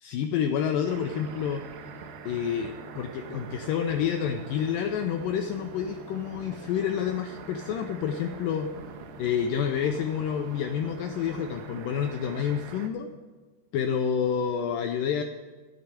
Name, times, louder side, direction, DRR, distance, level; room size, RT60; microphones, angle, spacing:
voice 1, 0.0-1.6 2.3-8.7 9.2-13.1 13.7-15.2, left 8 dB, 90° left, 6 dB, 1.9 m, -28 dB
sound 1, 0.9-12.9, right 5 dB, 80° right, 2.7 m, -43 dB
12.5 x 6.8 x 9.0 m, 1.3 s
omnidirectional pair, 4.6 m